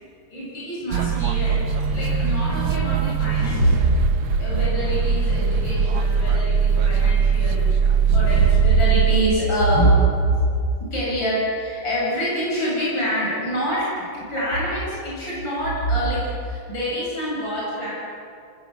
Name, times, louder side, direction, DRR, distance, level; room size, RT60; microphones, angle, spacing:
voice 1, 0.3-3.9 4.4-7.6 8.1-17.9, right 1 dB, 75° left, -6 dB, 8.8 m, -24 dB
sound 1, 0.9-9.2, right 6 dB, 80° right, 1.7 m, -21 dB
26.5 x 19.5 x 8.1 m, 2.4 s
omnidirectional pair, 2.1 m